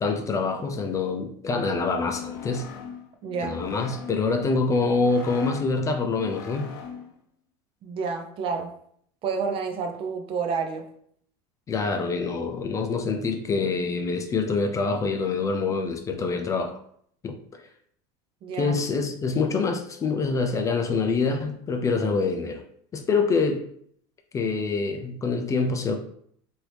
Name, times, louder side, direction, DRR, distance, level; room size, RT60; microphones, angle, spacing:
voice 1, 0.0-2.7 3.4-6.7 11.7-16.8 17.2-17.3 18.6-22.6 22.9-23.6 24.3-25.9, left 4 dB, 25° left, 5 dB, 0.4 m, -25 dB
sound 1, 1.9-7.2, left 7 dB, 70° left, 0.6 m, -40 dB
voice 2, 3.2-3.6 7.8-8.7 9.2-10.8 18.4-18.8, right 5 dB, 40° right, 4 dB, 0.6 m, -29 dB
2.9 x 2.7 x 3.3 m, 0.65 s
supercardioid pair, 120°, 13 cm